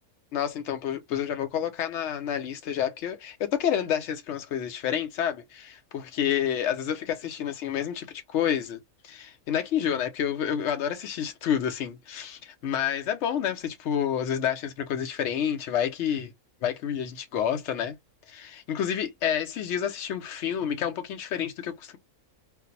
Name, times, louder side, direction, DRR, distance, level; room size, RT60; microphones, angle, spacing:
voice 1, 0.3-16.3 16.6-17.9 18.3-22.0, left 9 dB, 65° left, 0.9 m, -29 dB
3.8 x 2.0 x 2.7 m
omnidirectional pair, 1.5 m